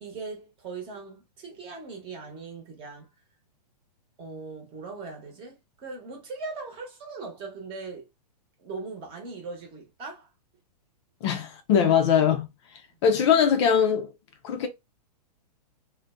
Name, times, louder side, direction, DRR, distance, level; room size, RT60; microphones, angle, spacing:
voice 1, 0.0-3.1 4.2-8.1 8.6-10.3 12.2-12.3, right 4 dB, 25° right, 0.9 m, -39 dB
voice 2, 11.2-12.5 13.0-14.1 14.4-14.7, left 7 dB, 40° left, 0.5 m, -21 dB
2.6 x 2.2 x 2.3 m
hypercardioid pair, 135°, 21 cm